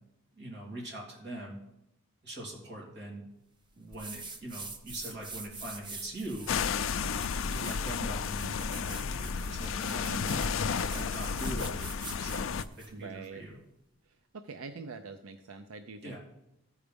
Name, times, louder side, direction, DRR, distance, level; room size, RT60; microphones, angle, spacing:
voice 1, 0.3-1.6 2.2-3.3 3.7-6.5 7.3-10.4 10.7-13.6 16.0-16.2, right 1 dB, 55° right, -2 dB, 3.0 m, -42 dB
sound 1, 3.9-13.0, right 3 dB, 20° right, 0.7 m, -45 dB
sound 2, 6.5-12.6, left 6 dB, 70° left, 0.4 m, -32 dB
voice 2, 10.1-10.5 12.9-13.4 14.0-16.2, right 4 dB, 90° right, 8 dB, 0.5 m, -45 dB
14.5 x 4.9 x 5.2 m, 0.85 s
head